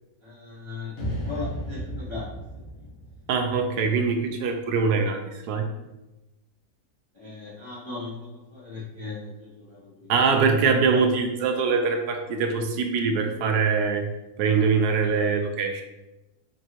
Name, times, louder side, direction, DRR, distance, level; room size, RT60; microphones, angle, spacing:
voice 1, 0.2-0.9 1.2-2.3 7.1-10.1, left 4 dB, 45° left, -7 dB, 0.3 m, -38 dB
sound 1, 1.0-4.2, equal, 60° left, 1.6 m, -34 dB
voice 2, 3.3-5.7 10.1-14.1 14.4-15.8, right 5 dB, 75° right, 4 dB, 1.1 m, -23 dB
4.4 x 3.0 x 2.8 m, 0.99 s
omnidirectional pair, 1.7 m